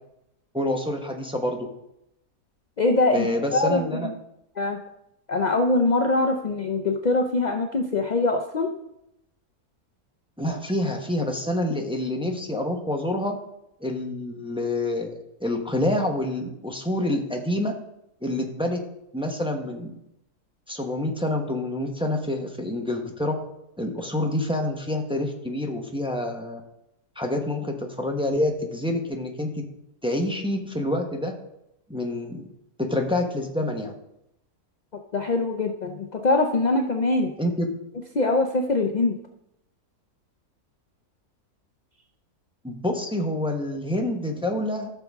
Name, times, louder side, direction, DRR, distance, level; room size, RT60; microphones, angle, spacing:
voice 1, 0.5-1.7 3.1-4.1 10.4-13.3 13.8-15.1 15.4-17.7 18.2-18.8 19.1-19.9 20.7-23.4 23.8-26.6 27.2-29.6 30.0-31.3 31.9-32.5 32.8-33.9 37.4-37.7 42.6-44.9, left 1 dB, 5° right, 2 dB, 0.9 m, -27 dB
voice 2, 2.8-3.3 3.5-4.1 4.6-4.8 5.3-8.7 35.1-37.3 38.1-39.1, left 2 dB, 55° left, 4 dB, 0.4 m, -23 dB
13.5 x 6.7 x 3.6 m, 0.83 s
omnidirectional pair, 1.7 m